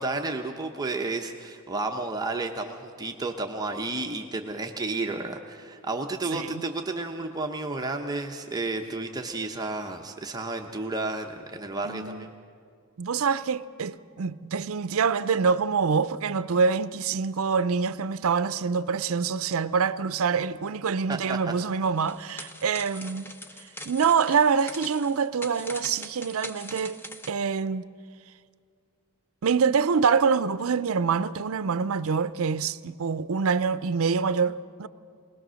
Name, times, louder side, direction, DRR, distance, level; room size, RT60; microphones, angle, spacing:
voice 1, 0.0-12.3 21.1-21.5, right 2 dB, 15° right, 0.8 m, -32 dB
voice 2, 6.3-6.6 11.8-12.2 13.0-23.4 23.9-27.0 27.3-27.9 29.4-34.9, right 5 dB, 65° right, 0.5 m, -25 dB
sound 1, 22.0-27.3, left 1 dB, 10° left, 0.7 m, -42 dB
20.5 x 20.0 x 6.3 m
head